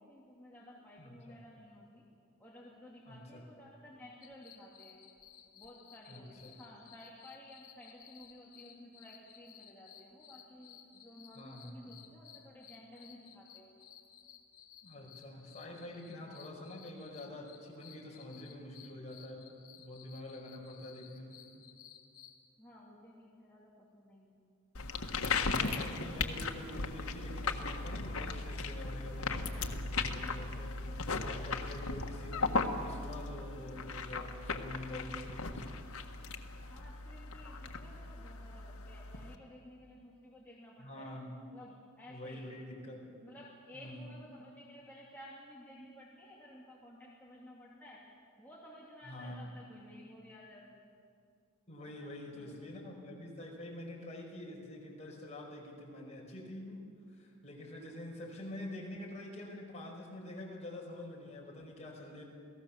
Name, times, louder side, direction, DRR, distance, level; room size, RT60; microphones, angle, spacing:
voice 1, 0.0-2.0 2.4-5.0 5.5-14.0 22.6-24.4 36.7-41.2 41.5-42.6 43.2-48.1 48.4-50.9 51.8-51.9 52.3-52.8, left 1 dB, 10° left, -5 dB, 2.7 m, -54 dB
voice 2, 1.0-1.4 3.1-3.4 6.1-6.5 11.4-12.0 14.8-21.5 25.3-35.8 40.8-41.4 42.1-43.2 43.7-44.1 49.1-49.6 51.7-56.8 57.1-62.2, left 1 dB, 30° left, -1 dB, 5.2 m, -46 dB
sound 1, 4.2-22.4, left 10 dB, 70° left, 3.0 m, -57 dB
sound 2, 24.7-39.4, left 4 dB, 85° left, 1.6 m, -37 dB
28.0 x 18.0 x 7.3 m, 2.3 s
head